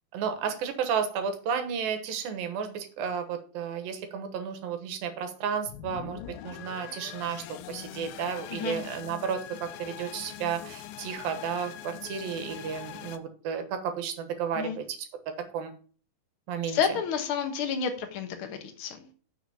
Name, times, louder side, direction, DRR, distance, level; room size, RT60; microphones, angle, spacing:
voice 1, 0.1-15.1 15.5-15.7 16.5-17.0, right 7 dB, 90° right, 8 dB, 3.1 m, -32 dB
sound 1, 5.7-13.2, left 12 dB, 85° left, 2.4 m, -43 dB
voice 2, 8.5-8.8 14.6-14.8 16.7-19.1, left 7 dB, 60° left, 6 dB, 1.3 m, -30 dB
6.6 x 6.3 x 7.0 m, 0.41 s
omnidirectional pair, 4.1 m